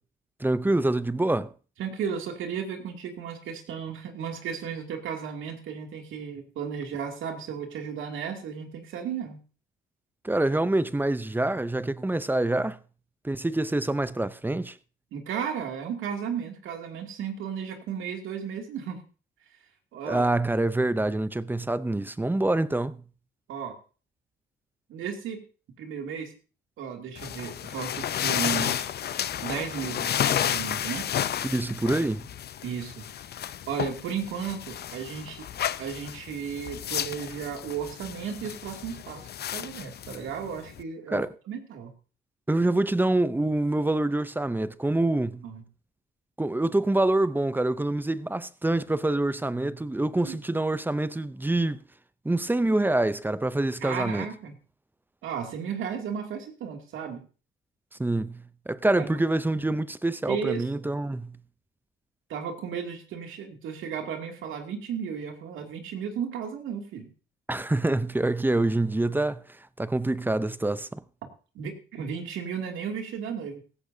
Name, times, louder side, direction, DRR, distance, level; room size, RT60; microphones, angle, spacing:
voice 1, 0.4-1.5 10.2-12.8 13.2-14.8 20.0-23.0 31.4-32.3 41.1-41.3 42.5-45.5 46.4-51.8 52.2-54.3 58.0-61.4 67.5-69.4 69.8-71.0, right 2 dB, 10° right, 0.6 m, -26 dB
voice 2, 1.8-9.4 15.1-19.0 19.4-19.6 19.9-20.2 23.5-23.8 24.9-25.4 25.8-26.3 26.8-28.9 29.4-31.1 32.6-33.1 33.7-35.4 35.8-41.9 45.4-45.6 50.2-50.4 53.8-54.5 55.2-57.2 59.0-59.1 60.3-60.6 62.3-67.1 71.5-73.6, right 7 dB, 85° right, 2.6 m, -34 dB
sound 1, 27.2-40.8, left 10 dB, 55° left, 0.6 m, -32 dB
17.0 x 15.0 x 2.8 m
cardioid pair, 90°, 20 cm